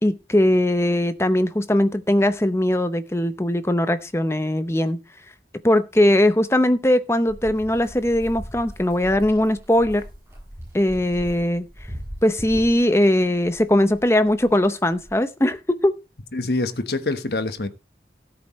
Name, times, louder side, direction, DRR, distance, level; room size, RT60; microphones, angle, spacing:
voice 1, 0.0-5.0 5.6-10.0 10.7-11.7 12.2-15.9, left 1 dB, 15° left, 0.7 m, -20 dB
sound 1, 7.3-15.2, equal, 15° right, 7.8 m, -39 dB
voice 2, 16.3-17.7, left 2 dB, 65° left, 1.2 m, -25 dB
18.0 x 7.8 x 3.1 m
head